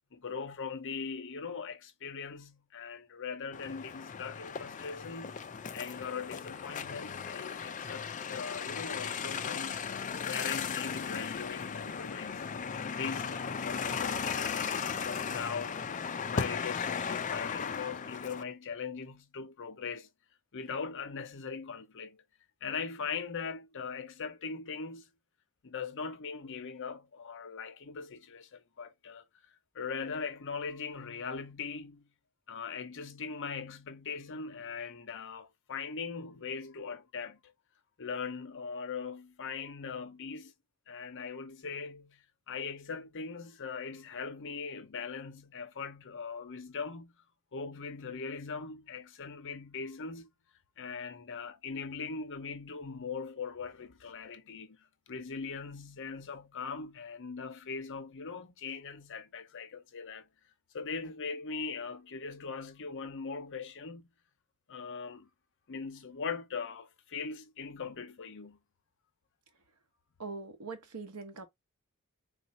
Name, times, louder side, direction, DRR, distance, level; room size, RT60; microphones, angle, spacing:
voice 1, 0.1-5.3 5.7-12.5 13.0-15.8 16.3-20.1 20.5-22.2 22.6-25.1 25.6-29.2 29.7-32.1 32.5-37.5 38.0-40.5 40.9-47.1 47.5-50.3 50.8-54.8 55.1-60.3 60.7-64.1 64.7-65.3 65.7-68.6, left 5 dB, 60° left, 0.7 m, -40 dB
sound 1, 3.5-18.4, left 6 dB, 35° left, 0.4 m, -36 dB
voice 2, 70.2-71.5, right 4 dB, 90° right, 1.1 m, -42 dB
3.9 x 2.6 x 4.1 m
head